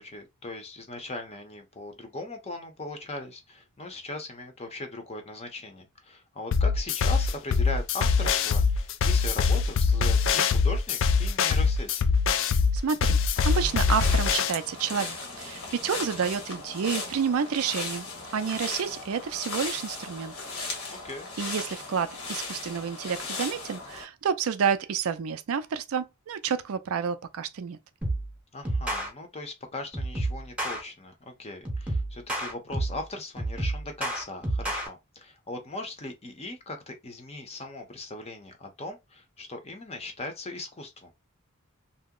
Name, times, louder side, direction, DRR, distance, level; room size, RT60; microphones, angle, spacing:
voice 1, 0.0-12.0 20.9-21.3 28.5-41.1, left 2 dB, 30° left, 0.7 m, -39 dB
sound 1, 6.5-14.5, left 5 dB, 60° left, 0.3 m, -23 dB
voice 2, 12.7-13.2 13.4-18.1 18.3-20.3 21.4-27.8, right 7 dB, 70° right, 0.4 m, -29 dB
sound 2, 13.4-24.0, left 3 dB, 80° left, 1.2 m, -37 dB
sound 3, 28.0-28.3 28.7-29.1 29.9-30.8 31.7-33.0 33.4-34.9, right 1 dB, 5° right, 0.9 m, -30 dB
2.8 x 2.0 x 3.7 m
head